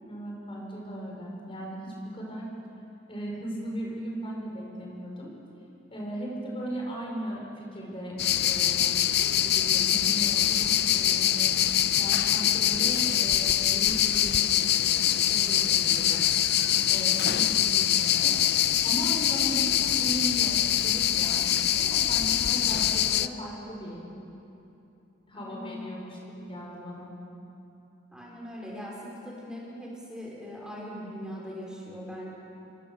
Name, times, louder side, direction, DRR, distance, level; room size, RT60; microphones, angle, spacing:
voice 1, 0.0-2.5 3.1-5.3 5.9-9.0 9.3-11.5 12.0-14.3 15.2-16.2 16.9-18.4 18.8-24.0 25.3-27.1, right 1 dB, 30° left, -2 dB, 5.3 m, -37 dB
sound 1, 8.2-23.3, left 11 dB, 60° left, 0.7 m, -24 dB
voice 2, 25.3-26.1 28.1-32.3, equal, 5° right, -4 dB, 5.3 m, -40 dB
29.0 x 23.5 x 7.0 m, 2.8 s
head